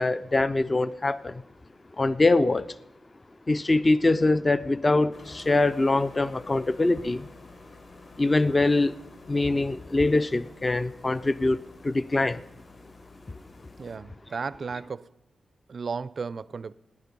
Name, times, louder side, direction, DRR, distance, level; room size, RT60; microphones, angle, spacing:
voice 1, 0.0-1.4 2.0-2.7 3.5-7.3 8.2-8.9 9.3-12.4, left 2 dB, 20° left, 0.4 m, -23 dB
sound 1, 5.1-14.0, left 3 dB, 50° left, 1.8 m, -50 dB
voice 2, 13.8-15.1 15.7-16.7, right 5 dB, 45° right, 0.4 m, -34 dB
17.0 x 10.5 x 5.3 m
wide cardioid pair, 165°, 0 cm